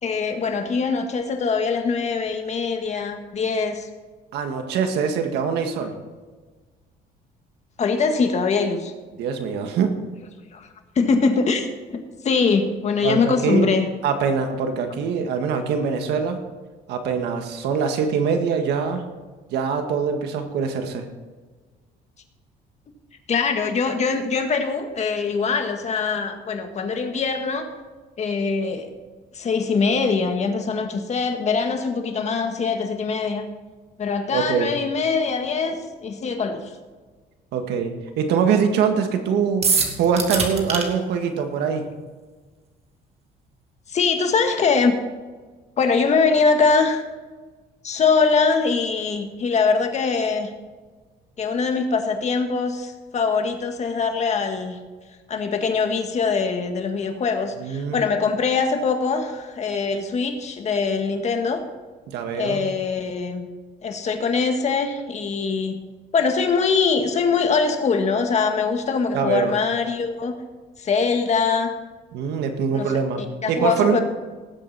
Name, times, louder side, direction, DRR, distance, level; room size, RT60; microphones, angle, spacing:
voice 1, 0.0-3.9 7.8-8.9 10.5-10.7 11.0-13.9 23.3-27.7 28.2-28.9 29.3-33.5 34.0-36.7 43.9-44.9 45.8-47.0 47.8-50.5 51.4-54.8 55.3-61.6 62.3-63.5 63.8-65.8 66.1-70.4 70.8-71.7 72.7-73.0 73.4-74.0, left 5 dB, 40° left, 5 dB, 1.8 m, -22 dB
voice 2, 4.3-5.9 9.2-10.0 13.0-13.7 14.0-16.4 16.9-19.0 19.5-21.0 34.3-34.7 37.5-39.7 40.0-41.8 57.6-58.0 62.1-62.7 69.1-69.5 72.1-73.2 73.5-74.0, right 6 dB, 80° right, 5 dB, 1.8 m, -23 dB
sound 1, 39.6-40.8, right 4 dB, 40° right, 2.3 m, -22 dB
18.5 x 7.8 x 4.3 m, 1.3 s
cardioid pair, 110°, 17 cm